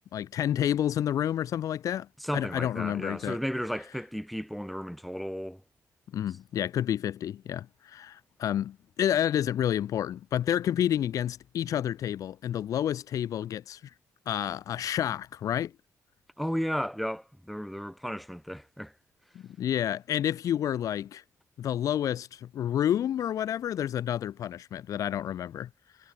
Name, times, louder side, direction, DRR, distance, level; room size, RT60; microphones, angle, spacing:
voice 1, 0.1-2.1 2.3-3.4 6.1-13.8 14.3-15.7 19.3-21.2 21.6-25.7, left 10 dB, 75° left, 1.1 m, -29 dB
voice 2, 2.2-5.6 16.4-18.9, equal, ahead, 2.1 m, -34 dB
cardioid pair, 125°, 6 cm